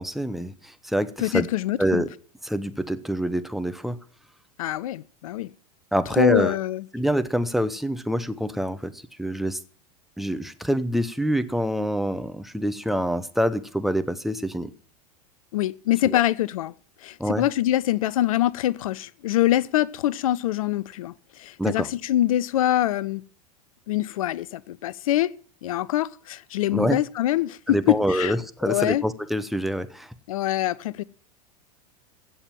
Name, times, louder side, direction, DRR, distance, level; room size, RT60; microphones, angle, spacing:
voice 1, 0.0-1.5 1.8-2.1 2.4-4.0 5.9-6.6 6.9-9.6 10.2-14.7 16.0-16.2 17.2-17.5 21.6-21.9 26.7-27.0 27.7-30.1, equal, ahead, 0.9 m, -26 dB
voice 2, 1.2-2.0 4.6-5.5 6.2-6.8 15.5-16.7 17.0-23.2 23.9-25.3 25.6-28.3 28.6-29.0 30.3-31.0, left 13 dB, 65° left, 0.5 m, -24 dB
16.0 x 6.9 x 7.4 m
figure-of-eight pair, 90°, 19 cm